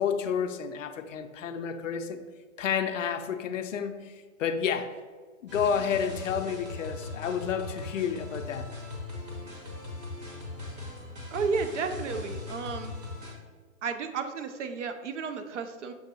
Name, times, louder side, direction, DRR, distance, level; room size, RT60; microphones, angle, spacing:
voice 1, 0.0-2.2 2.6-4.9 5.4-8.7, left 7 dB, 65° left, 8 dB, 0.5 m, -30 dB
sound 1, 5.5-13.3, left 3 dB, 30° right, 0.9 m, -39 dB
voice 2, 11.3-13.0 13.8-15.9, right 5 dB, 60° right, 8 dB, 0.5 m, -32 dB
6.5 x 2.6 x 2.6 m, 1.5 s
hypercardioid pair, 155°, 42 cm